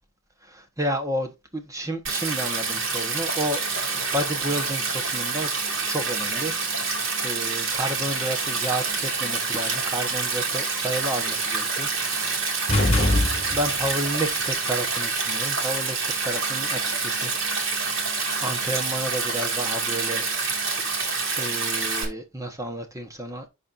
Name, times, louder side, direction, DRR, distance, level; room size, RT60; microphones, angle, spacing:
voice 1, 0.4-5.5 5.9-6.6 6.9-12.4 13.1-17.3 18.4-20.2 21.4-23.5, right 1 dB, 15° right, 1.1 m, -31 dB
Stream, 2.1-22.1, right 4 dB, 60° right, 2.8 m, -27 dB
sound 1, 12.7-13.9, left 1 dB, 25° left, 1.9 m, -22 dB
11.5 x 4.3 x 2.5 m
head